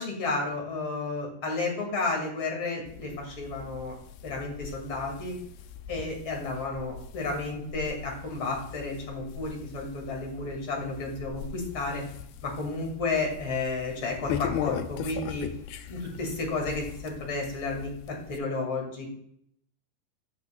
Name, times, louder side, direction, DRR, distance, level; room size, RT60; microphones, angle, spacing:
voice 1, 0.0-3.9 4.2-5.4 5.9-12.0 12.4-15.5 15.9-19.1, left 3 dB, 40° left, 0 dB, 2.2 m, -32 dB
sound 1, 2.9-18.4, left 8 dB, 90° left, 2.2 m, -40 dB
14.5 x 7.0 x 2.3 m, 0.68 s
omnidirectional pair, 5.0 m